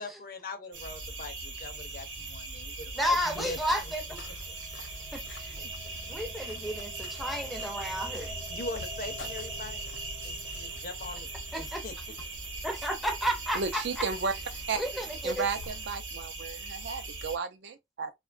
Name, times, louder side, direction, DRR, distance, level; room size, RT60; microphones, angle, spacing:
voice 1, 0.0-3.6 4.5-4.6 5.6-5.7 8.5-9.8 10.2-11.3 11.6-11.9, left 3 dB, 45° left, 0.5 m, -41 dB
sound 1, 0.7-17.4, right 3 dB, 90° right, 0.9 m, -40 dB
sound 2, 1.6-13.8, left 2 dB, 45° right, 0.9 m, -49 dB
voice 2, 3.0-4.2 5.1-5.6 6.1-8.3 11.5-11.8 12.6-14.0 14.8-15.5, equal, ahead, 0.5 m, -32 dB
sound 3, 3.4-15.9, left 2 dB, 75° left, 0.8 m, -49 dB
voice 3, 13.5-14.3 14.7-14.8 15.2-18.1, right 5 dB, 65° right, 0.5 m, -33 dB
2.8 x 2.2 x 2.4 m
head